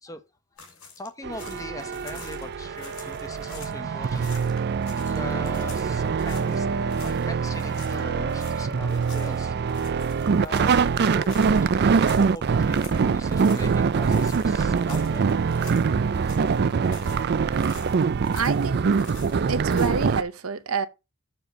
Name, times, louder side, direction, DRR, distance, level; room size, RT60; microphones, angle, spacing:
sound 1, 0.6-3.8 4.1-6.6 6.9-7.3 7.5-15.9 16.1-17.2 17.5-20.1, left 5 dB, 80° left, 3.0 m, -47 dB
voice 1, 1.0-9.7 10.4-15.5, left 2 dB, 15° left, 1.0 m, -41 dB
sound 2, 1.2-20.2, right 5 dB, 50° right, 0.4 m, -24 dB
voice 2, 18.3-18.8 19.5-20.9, right 5 dB, 75° right, 0.8 m, -27 dB
7.0 x 4.4 x 6.7 m
head